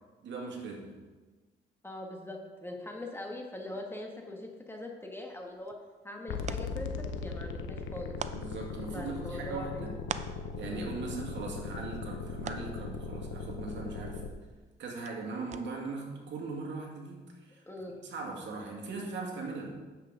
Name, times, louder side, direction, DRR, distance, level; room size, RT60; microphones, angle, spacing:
voice 1, 0.2-1.0 8.3-10.0 10.6-14.2 14.8-17.6 18.0-19.8, right 3 dB, 65° right, 0 dB, 2.1 m, -39 dB
voice 2, 1.8-5.8 6.0-8.2 8.9-9.9 10.7-10.9 17.7-18.0, left 1 dB, 10° left, 1 dB, 1.4 m, -42 dB
sound 1, 5.3-16.0, right 6 dB, 35° right, 0.5 m, -47 dB
sound 2, 6.3-14.3, left 5 dB, 75° left, 0.8 m, -39 dB
9.8 x 7.4 x 3.8 m, 1.3 s
cardioid pair, 90°, 20 cm